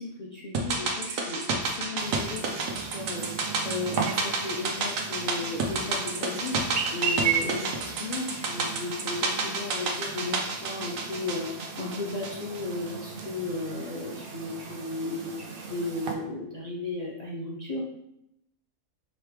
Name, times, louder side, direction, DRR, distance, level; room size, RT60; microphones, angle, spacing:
voice 1, 0.0-17.8, left 3 dB, 65° left, -4 dB, 0.4 m, -35 dB
sound 1, 0.5-12.9 13.2-13.3, right 3 dB, 70° right, 1.1 m, -31 dB
Chirp tweet, 2.0-16.1, right 6 dB, 50° right, 0.7 m, -36 dB
4.8 x 3.1 x 3.3 m, 0.81 s
omnidirectional pair, 1.5 m